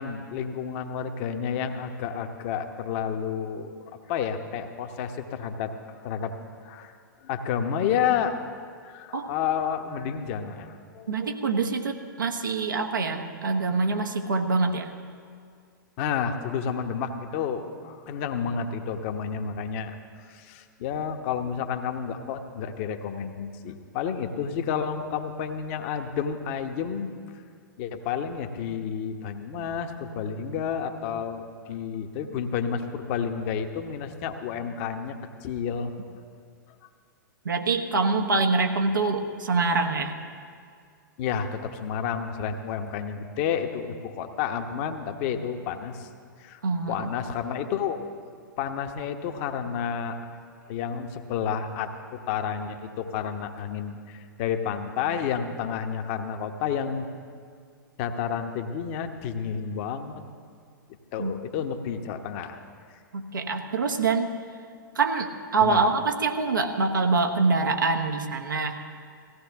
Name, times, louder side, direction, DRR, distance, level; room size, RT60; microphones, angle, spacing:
voice 1, 0.0-3.8 4.1-5.7 6.0-6.4 6.6-6.9 7.2-8.4 8.8-11.2 16.0-19.9 20.3-27.1 27.8-35.9 41.2-46.1 46.4-46.6 46.9-48.0 48.6-50.2 50.7-57.1 58.0-60.2 61.1-62.6 65.6-65.8, left 7 dB, 40° left, 6 dB, 1.1 m, -30 dB
voice 2, 11.1-14.9 37.4-40.1 46.6-47.1 61.2-61.3 63.1-64.4 64.9-68.8, right 4 dB, 70° right, 3 dB, 1.3 m, -25 dB
18.5 x 16.0 x 3.6 m, 2.2 s
figure-of-eight pair, 105°, 11 cm